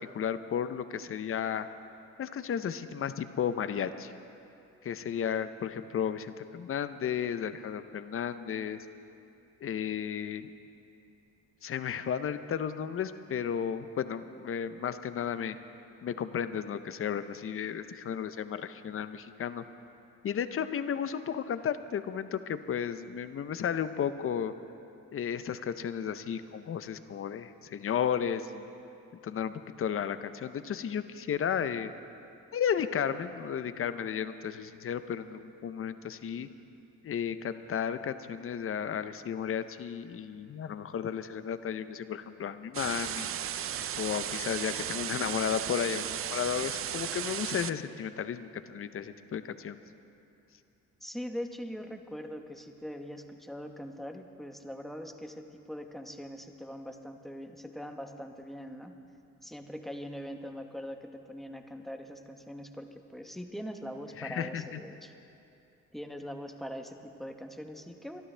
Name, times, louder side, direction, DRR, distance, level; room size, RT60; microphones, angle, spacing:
voice 1, 0.0-1.7 2.2-4.1 4.8-8.8 9.6-10.5 11.6-15.6 16.0-19.6 20.2-24.5 25.1-28.7 29.2-31.9 32.5-36.5 37.0-43.3 44.0-49.8 64.2-64.8, left 8 dB, 45° left, 11 dB, 0.7 m, -33 dB
sound 1, 42.7-47.7, right 10 dB, 45° right, 0.5 m, -35 dB
voice 2, 51.0-59.0 59.4-65.1 65.9-68.2, equal, ahead, 5 dB, 1.0 m, -42 dB
24.0 x 12.5 x 3.4 m, 2.6 s
cardioid pair, 90°, 30 cm